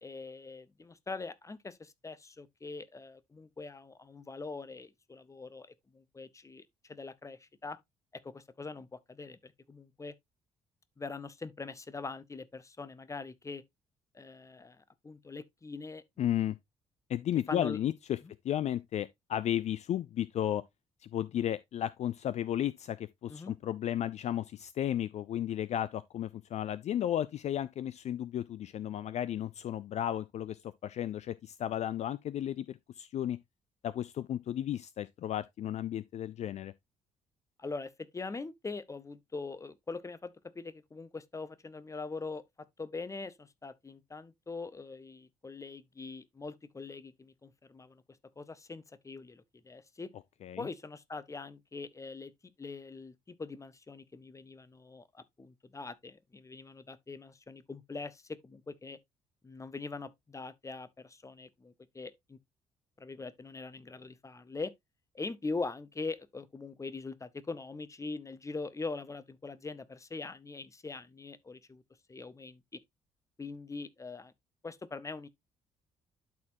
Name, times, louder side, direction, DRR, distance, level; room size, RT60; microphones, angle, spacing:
voice 1, 0.0-7.8 8.2-10.1 11.0-13.6 14.1-16.5 17.3-17.8 18.2-18.3 23.3-23.6 37.6-48.0 48.4-50.1 50.6-52.3 52.6-59.0 59.4-62.4 63.0-64.7 65.1-71.8 72.1-72.6 73.4-74.3 74.6-75.3, left 3 dB, 20° left, 0.8 m, -42 dB
voice 2, 16.2-16.6 17.1-18.2 18.4-20.6 21.0-33.4 33.8-36.7 50.4-50.7, left 11 dB, 45° left, 0.4 m, -34 dB
12.0 x 4.3 x 2.6 m
figure-of-eight pair, 45°, 16 cm